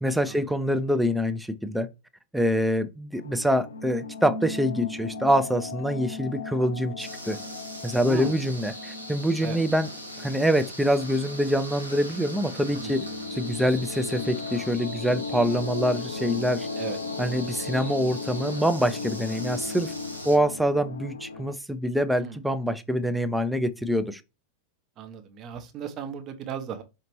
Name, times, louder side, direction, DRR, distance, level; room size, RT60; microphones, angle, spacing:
voice 1, 0.0-1.9 2.3-7.4 7.8-9.9 10.2-13.0 13.3-16.7 17.2-19.9 20.2-24.2, equal, 5° right, 0.4 m, -25 dB
sound 1, 3.2-21.5, left 3 dB, 75° left, 0.5 m, -37 dB
sound 2, 7.0-20.4, equal, 90° right, 1.0 m, -41 dB
voice 2, 8.0-8.4 9.4-9.6 13.0-13.1 16.8-17.0 22.2-22.4 25.0-26.8, right 8 dB, 35° right, 0.8 m, -36 dB
5.0 x 2.8 x 2.9 m
figure-of-eight pair, 90°, 0 cm